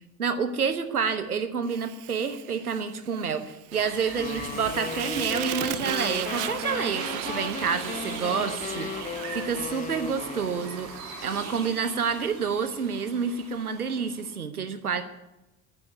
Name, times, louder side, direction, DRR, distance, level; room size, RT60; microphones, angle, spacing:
voice 1, 0.2-15.0, right 6 dB, 85° right, 10 dB, 1.0 m, -29 dB
Fire, 1.6-10.9, right 17 dB, 45° right, 0.6 m, -37 dB
sound 1, 3.7-14.4, right 5 dB, 65° right, 2.4 m, -41 dB
sound 2, 4.2-11.1, left 8 dB, 20° left, 0.4 m, -36 dB
11.0 x 9.9 x 9.5 m, 0.96 s
figure-of-eight pair, 55°, 43 cm